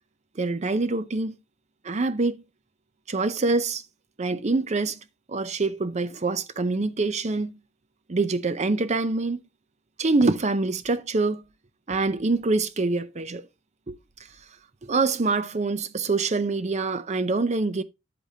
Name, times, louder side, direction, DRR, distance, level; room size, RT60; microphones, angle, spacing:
voice 1, 0.4-1.3 1.8-2.3 3.1-3.8 4.2-5.0 5.3-7.5 8.1-9.4 10.0-11.4 11.9-13.4 13.9-14.0 14.8-17.8, right 3 dB, 35° right, 0.5 m, -25 dB
8.9 x 8.1 x 2.8 m
head